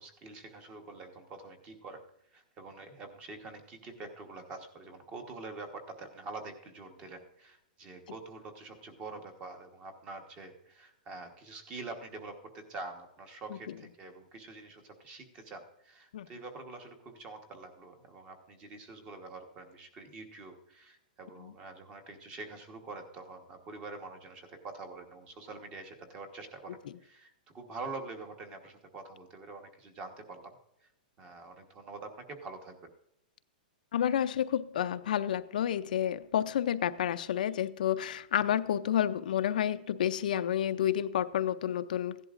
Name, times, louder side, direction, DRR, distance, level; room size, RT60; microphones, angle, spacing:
voice 1, 0.0-2.0 2.3-30.5 31.2-32.8, right 3 dB, 20° right, 1.2 m, -46 dB
voice 2, 33.9-42.2, left 10 dB, 65° left, 0.5 m, -30 dB
16.0 x 11.0 x 2.5 m
hypercardioid pair, 170°, 5 cm